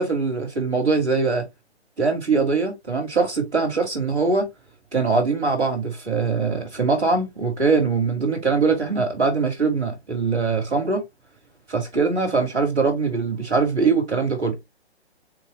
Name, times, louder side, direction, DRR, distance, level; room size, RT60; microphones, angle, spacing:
voice 1, 0.0-1.4 2.0-4.5 4.9-11.0 11.7-14.6, right 4 dB, 5° right, 0.4 m, -22 dB
3.6 x 2.9 x 3.2 m
figure-of-eight pair, 140°, 33 cm